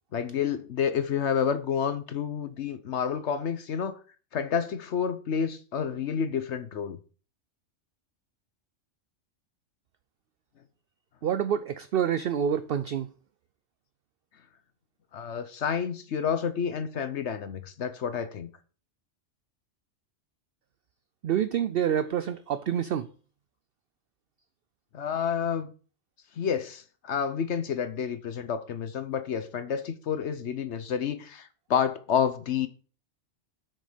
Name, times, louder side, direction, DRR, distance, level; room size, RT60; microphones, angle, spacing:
voice 1, 0.1-4.0 4.3-7.0 15.1-18.5 24.9-25.7 26.4-32.7, left 7 dB, 65° left, 1.1 m, -29 dB
voice 2, 11.2-13.1 21.2-23.1, right 9 dB, 60° right, 0.7 m, -27 dB
8.2 x 6.4 x 5.1 m
omnidirectional pair, 1.3 m